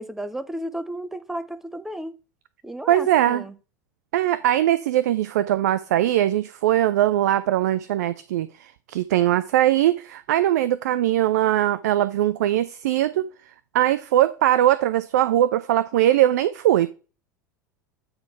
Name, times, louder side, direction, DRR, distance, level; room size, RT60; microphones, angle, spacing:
voice 1, 0.0-2.1 2.6-3.5, right 1 dB, 5° right, 0.6 m, -33 dB
voice 2, 2.9-3.4 4.1-13.3 13.7-16.9, right 13 dB, 60° right, 0.4 m, -21 dB
8.7 x 4.1 x 4.3 m
figure-of-eight pair, 80°, 10 cm